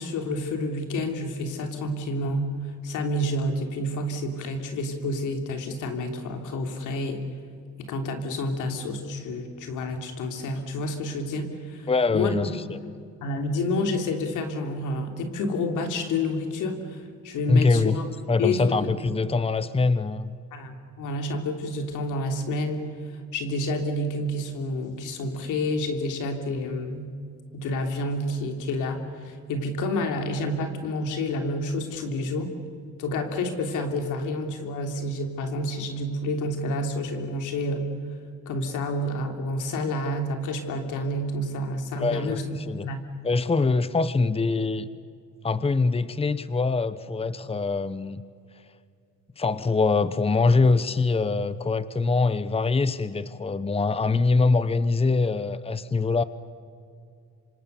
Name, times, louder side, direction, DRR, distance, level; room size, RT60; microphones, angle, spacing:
voice 1, 0.0-2.5 2.8-7.2 7.8-12.5 13.2-18.0 18.4-18.9 20.5-22.9 23.3-27.1 27.5-32.5 33.0-37.9 38.4-43.0, left 1 dB, 85° left, 5 dB, 3.2 m, -29 dB
voice 2, 11.9-12.8 17.5-18.0 18.3-20.4 42.0-42.9 43.2-44.9 45.4-48.2 49.4-56.2, left 3 dB, 20° left, 14 dB, 0.9 m, -23 dB
27.0 x 25.5 x 6.9 m, 2.3 s
cardioid pair, 90°, 30 cm